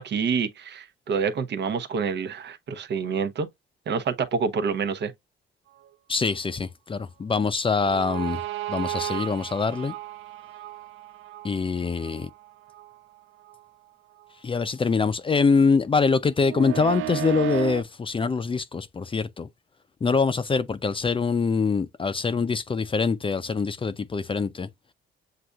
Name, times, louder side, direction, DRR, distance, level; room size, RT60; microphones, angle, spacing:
voice 1, 0.0-3.5 3.9-5.1, right 5 dB, 60° right, 0.9 m, -27 dB
voice 2, 6.1-8.4 8.7-9.9 11.4-12.3 14.4-19.5 20.0-24.7, left 4 dB, 25° left, 0.5 m, -24 dB
sound 1, 7.8-13.0 13.5-13.6 16.4-17.8, right 15 dB, 80° right, 0.5 m, -34 dB
7.6 x 2.6 x 2.3 m
cardioid pair, 90°, 20 cm